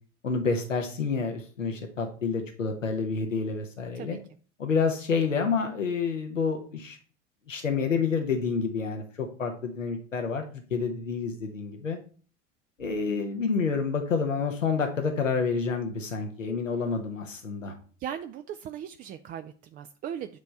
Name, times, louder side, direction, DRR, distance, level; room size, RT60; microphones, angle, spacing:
voice 1, 0.2-4.2 4.6-7.0 7.5-10.4 10.7-12.0 12.8-17.7, left 5 dB, 85° left, 4 dB, 1.0 m, -28 dB
voice 2, 18.0-20.4, right 9 dB, 25° right, 8 dB, 0.4 m, -38 dB
9.5 x 3.3 x 5.4 m, 0.41 s
figure-of-eight pair, 75°, 37 cm